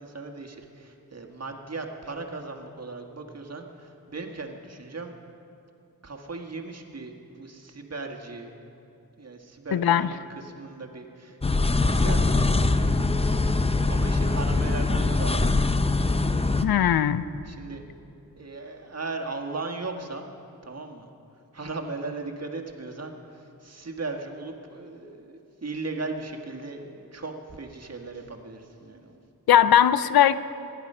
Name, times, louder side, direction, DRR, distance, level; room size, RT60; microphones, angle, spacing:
voice 1, 0.0-5.1 6.0-8.6 9.2-13.5 13.8-15.5 17.5-17.8 18.4-20.2 20.6-21.1 21.5-29.3, right 3 dB, 45° right, 2 dB, 1.7 m, -37 dB
voice 2, 9.7-10.1 16.6-17.2 29.5-30.4, left 10 dB, 85° left, 15 dB, 0.6 m, -19 dB
sound 1, 11.4-16.6, left 3 dB, 15° left, 0.7 m, -23 dB
23.5 x 11.0 x 5.6 m, 2.8 s
wide cardioid pair, 85°, 36 cm